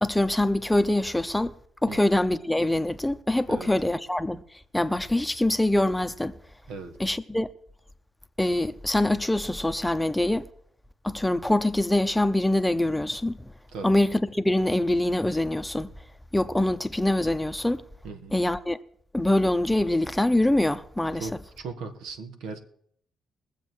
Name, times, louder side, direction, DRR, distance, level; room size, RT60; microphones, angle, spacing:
voice 1, 0.0-1.5 1.8-4.4 4.7-6.4 7.0-7.5 8.4-10.5 11.0-13.4 13.8-15.9 16.3-17.8 18.3-18.8 19.1-21.3, left 1 dB, 5° left, 0.8 m, -24 dB
voice 2, 18.0-18.4 21.2-22.6, right 4 dB, 90° right, 1.9 m, -38 dB
22.0 x 7.5 x 4.6 m
cardioid pair, 90°, 0 cm